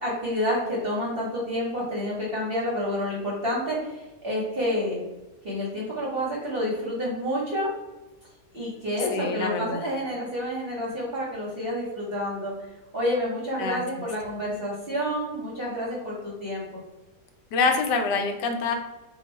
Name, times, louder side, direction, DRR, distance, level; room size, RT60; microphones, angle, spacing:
voice 1, 0.0-5.0 5.4-7.7 8.5-12.5 12.9-16.8, equal, 50° right, -5 dB, 0.7 m, -29 dB
voice 2, 9.1-9.8 13.6-13.8 17.5-18.7, left 4 dB, 80° left, 4 dB, 1.2 m, -25 dB
2.9 x 2.3 x 4.1 m, 1.1 s
omnidirectional pair, 1.9 m